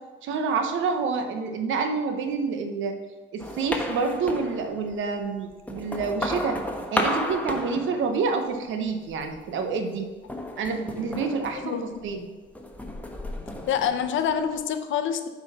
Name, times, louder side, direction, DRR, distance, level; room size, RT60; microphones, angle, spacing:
voice 1, 0.2-2.9 3.3-6.6 6.9-10.1 10.6-12.2, right 4 dB, 80° right, 6 dB, 1.1 m, -28 dB
sound 1, 3.4-5.0 5.5-8.5 8.9-9.5 10.3-12.2 12.5-14.6, left 1 dB, 5° left, 1.1 m, -33 dB
voice 2, 11.5-12.1 13.7-15.3, left 8 dB, 75° left, 8 dB, 0.7 m, -27 dB
8.3 x 4.8 x 5.6 m, 1.3 s
cardioid pair, 90°, 20 cm